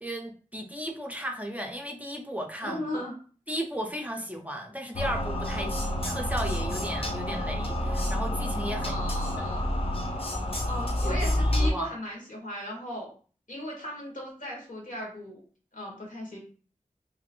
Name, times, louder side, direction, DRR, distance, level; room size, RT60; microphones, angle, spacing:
voice 1, 0.0-2.8 3.5-9.0 9.4-9.6 11.0-11.9, equal, 10° right, 2 dB, 0.5 m, -35 dB
voice 2, 2.6-3.1 8.8-9.7 10.7-13.1 13.5-15.4 15.7-16.4, left 1 dB, 75° left, -2 dB, 1.3 m, -36 dB
sound 1, 4.9-11.7, left 1 dB, 45° left, 0.6 m, -29 dB
2.9 x 2.4 x 2.9 m, 0.41 s
wide cardioid pair, 50°, 14 cm